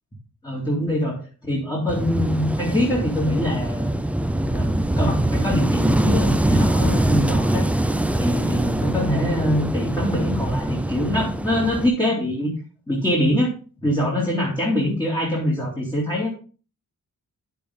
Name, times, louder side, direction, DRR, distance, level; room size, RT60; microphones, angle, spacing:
voice 1, 0.4-1.2 1.5-4.0 4.4-7.7 8.1-12.5 12.9-13.5 13.8-16.3, left 1 dB, 15° left, -4 dB, 2.4 m, -24 dB
Wind / Waves surf, 1.9-11.9, right 1 dB, 5° right, 0.4 m, -23 dB
10.0 x 6.9 x 3.6 m, 0.36 s
wide cardioid pair, 135°, 33 cm